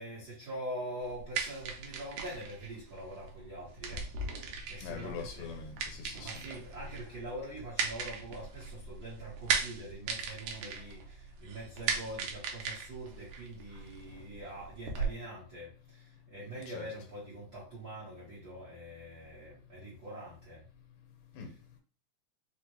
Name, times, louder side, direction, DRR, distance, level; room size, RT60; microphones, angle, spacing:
voice 1, 0.0-4.1 4.4-5.5 6.2-20.6, right 1 dB, 65° right, 0.9 m, -44 dB
sound 1, 1.0-15.1, right 5 dB, 85° right, 1.5 m, -38 dB
voice 2, 4.8-6.3 16.7-16.9 21.3-21.5, left 7 dB, 85° left, 2.4 m, -42 dB
5.0 x 2.0 x 3.0 m
omnidirectional pair, 3.7 m